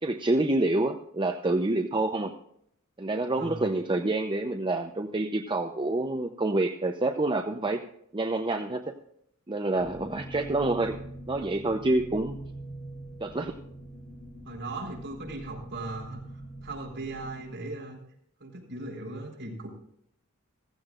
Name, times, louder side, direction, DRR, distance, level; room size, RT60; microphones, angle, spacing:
voice 1, 0.0-2.3 3.0-7.8 8.1-9.0 9.5-11.0 11.3-12.4 13.2-13.5, right 2 dB, 20° right, 5 dB, 0.7 m, -27 dB
voice 2, 3.4-3.7 14.4-18.0 18.4-19.7, right 2 dB, 55° right, -1 dB, 4.4 m, -38 dB
sound 1, 9.7-17.5, right 1 dB, 40° left, 5.0 m, -43 dB
15.5 x 15.5 x 2.5 m, 0.71 s
head